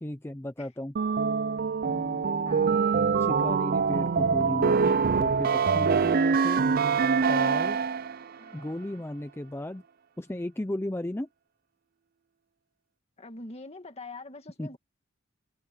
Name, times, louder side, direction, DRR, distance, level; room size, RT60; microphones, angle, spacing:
voice 1, 0.0-0.9 1.8-2.8 3.2-6.6 7.3-7.8 8.5-9.8 10.2-11.3 14.6-14.8, left 1 dB, 10° left, 0.6 m, -35 dB
sound 1, 1.0-8.2, right 5 dB, 50° right, 0.4 m, -24 dB
voice 2, 2.4-2.9 8.4-9.0 13.2-14.8, left 2 dB, 30° left, 2.3 m, -45 dB
head